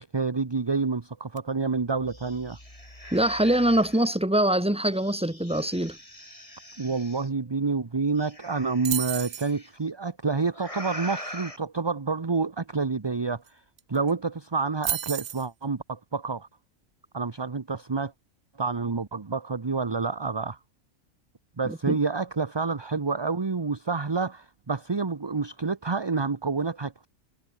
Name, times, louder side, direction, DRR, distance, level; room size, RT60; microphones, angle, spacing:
voice 1, 0.0-2.6 6.8-13.6 13.9-16.5 17.1-18.1 18.6-20.6 21.6-27.1, right 4 dB, 25° right, 0.7 m, -28 dB
sound 1, 1.4-1.5 1.8-4.2 4.9-7.3 8.2-9.7 10.5-11.6, left 1 dB, 25° left, 7.0 m, -43 dB
voice 2, 3.1-6.0 21.6-22.0, right 1 dB, 5° right, 1.7 m, -24 dB
sound 2, 8.9-9.5 13.5-13.6 13.8-14.1 14.8-15.5, right 10 dB, 65° right, 1.1 m, -31 dB
omnidirectional pair, 1.4 m